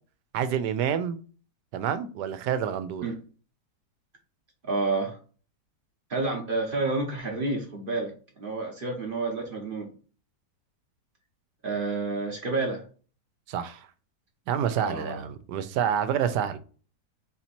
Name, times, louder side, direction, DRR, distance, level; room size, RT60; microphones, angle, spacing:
voice 1, 0.3-1.2 1.7-3.0 13.5-13.9 14.5-16.6, right 8 dB, 80° right, 1.2 m, -28 dB
voice 2, 4.6-5.2 6.1-9.9 11.6-12.8 14.8-15.2, right 3 dB, 40° right, 0.9 m, -29 dB
4.3 x 2.9 x 4.2 m
omnidirectional pair, 1.8 m